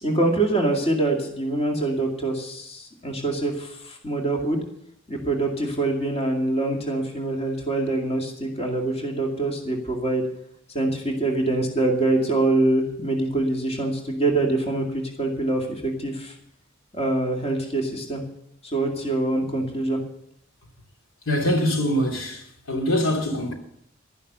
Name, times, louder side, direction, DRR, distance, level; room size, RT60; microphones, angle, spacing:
voice 1, 0.0-4.6 5.1-10.2 10.7-16.3 16.9-18.2 18.6-20.0, right 2 dB, 30° left, 2.3 m, -24 dB
voice 2, 21.3-23.5, equal, 90° left, 3.1 m, -24 dB
12.0 x 11.0 x 6.8 m
head